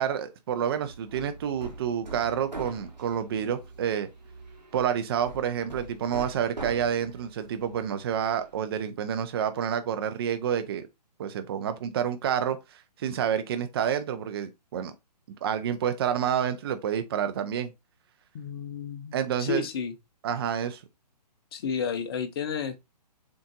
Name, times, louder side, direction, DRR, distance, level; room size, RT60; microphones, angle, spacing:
voice 1, 0.0-4.1 4.7-10.8 11.2-12.6 13.0-14.9 15.4-17.7 19.1-19.7 20.2-20.8, right 8 dB, 35° right, 0.6 m, -28 dB
Hammer, 0.8-8.6, right 2 dB, 85° right, 1.4 m, -43 dB
voice 2, 18.3-19.9 21.5-22.8, left 6 dB, 35° left, 0.7 m, -32 dB
7.3 x 2.6 x 2.5 m
figure-of-eight pair, 130°, 21 cm